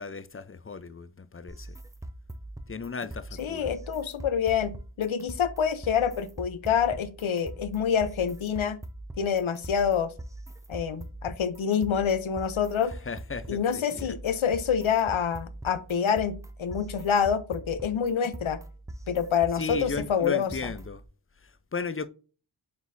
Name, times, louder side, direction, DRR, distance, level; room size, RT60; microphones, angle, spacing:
voice 1, 0.0-1.8 2.7-3.7 13.0-14.2 19.5-21.0 21.4-22.1, left 4 dB, 25° left, 0.6 m, -36 dB
sound 1, 1.5-21.0, right 1 dB, 5° right, 0.8 m, -42 dB
voice 2, 3.4-8.8 9.2-10.1 10.7-12.9 13.5-18.6 19.1-20.5, left 7 dB, 75° left, 0.8 m, -27 dB
9.6 x 4.0 x 2.7 m
cardioid pair, 45°, 49 cm